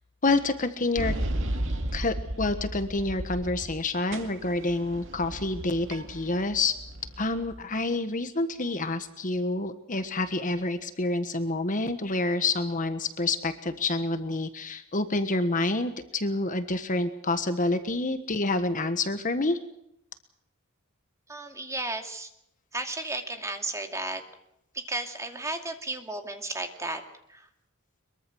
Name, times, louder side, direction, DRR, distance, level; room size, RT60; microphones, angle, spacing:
voice 1, 0.2-1.1 1.9-6.8 7.2-19.6, left 2 dB, 35° left, 9 dB, 1.4 m, -28 dB
sound 1, 1.0-3.8 4.1-7.6, right 1 dB, 60° right, 2.3 m, -34 dB
voice 2, 21.3-22.3 22.7-24.2 24.7-27.0 27.3-27.5, right 2 dB, 15° right, 5 dB, 2.4 m, -34 dB
23.0 x 23.0 x 6.3 m, 0.77 s
head